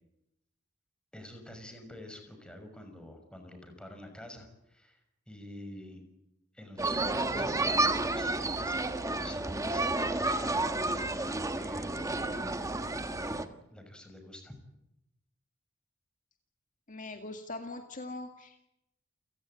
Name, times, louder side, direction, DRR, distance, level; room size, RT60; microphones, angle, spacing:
voice 1, 1.1-5.0 5.3-6.0 6.5-13.4 13.7-14.5, left 1 dB, 5° left, 5 dB, 6.1 m, -48 dB
sound 1, 6.8-13.4, right 2 dB, 15° right, 1.4 m, -31 dB
voice 2, 16.9-18.6, left 2 dB, 40° left, 5 dB, 2.0 m, -41 dB
29.5 x 17.5 x 9.2 m, 0.85 s
head